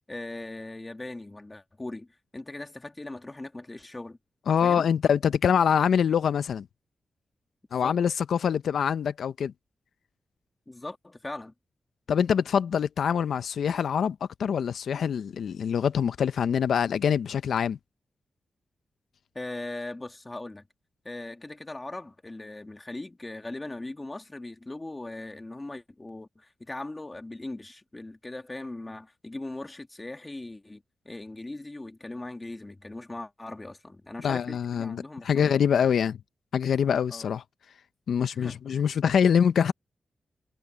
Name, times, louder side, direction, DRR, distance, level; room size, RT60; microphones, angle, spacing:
voice 1, 0.1-2.1 2.3-4.2 4.6-4.9 7.8-8.0 10.7-11.5 19.3-20.7 21.1-35.8 37.1-37.3 38.2-38.8, left 2 dB, 20° left, 1.9 m, -39 dB
voice 2, 4.5-6.6 7.7-9.5 12.1-17.8 34.2-36.2 36.5-37.4 38.1-39.7, left 7 dB, 85° left, 0.5 m, -24 dB
wide cardioid pair, 125°, 0 cm